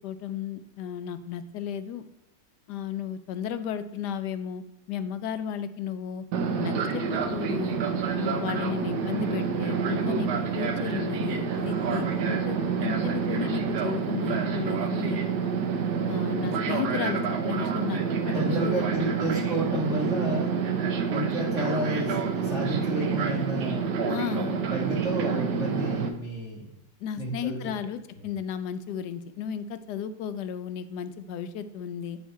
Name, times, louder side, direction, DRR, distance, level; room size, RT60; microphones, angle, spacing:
voice 1, 0.0-2.0 2.7-6.2 6.6-7.8 8.2-10.3 10.5-15.2 16.1-18.0 18.3-18.9 24.1-24.5 27.0-32.2, left 8 dB, 75° left, 11 dB, 1.1 m, -34 dB
Fixed-wing aircraft airplane, 6.3-26.1, right 6 dB, 70° right, 1.3 m, -28 dB
sound 1, 7.1-13.7, right 1 dB, 50° right, 1.4 m, -45 dB
voice 2, 18.3-20.6 21.1-24.1 24.7-26.7 27.2-27.6, right 1 dB, 5° right, -4 dB, 1.0 m, -31 dB
8.5 x 4.5 x 4.6 m, 0.90 s
omnidirectional pair, 1.9 m